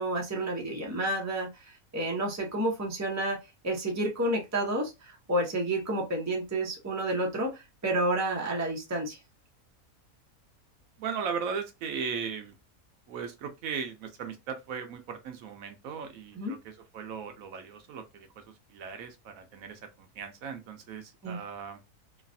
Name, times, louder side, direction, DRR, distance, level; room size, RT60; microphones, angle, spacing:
voice 1, 0.0-3.4 3.6-9.2 16.3-16.6 21.2-21.4, right 1 dB, 15° right, 0.7 m, -30 dB
voice 2, 11.0-12.5 13.1-18.3 18.7-21.8, right 6 dB, 75° right, 1.1 m, -37 dB
3.0 x 2.4 x 2.5 m
omnidirectional pair, 1.5 m